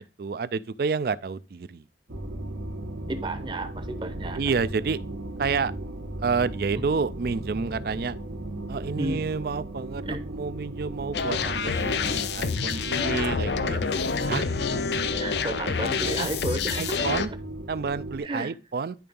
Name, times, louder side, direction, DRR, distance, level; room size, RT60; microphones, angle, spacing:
voice 1, 0.2-1.8 4.4-5.0 5.4-5.7 6.2-8.2 8.7-13.8 14.3-14.5 16.2-16.3 16.8-17.3 17.7-19.0, right 5 dB, 55° right, 0.4 m, -29 dB
sound 1, 2.1-18.2, right 1 dB, 85° right, 1.3 m, -36 dB
voice 2, 3.1-4.4 6.7-6.9 9.0-9.2 10.1-10.2 15.0-17.1 18.2-18.5, right 2 dB, 25° right, 0.8 m, -33 dB
sound 2, 11.1-17.3, left 5 dB, 70° left, 0.6 m, -27 dB
10.0 x 3.4 x 5.3 m
head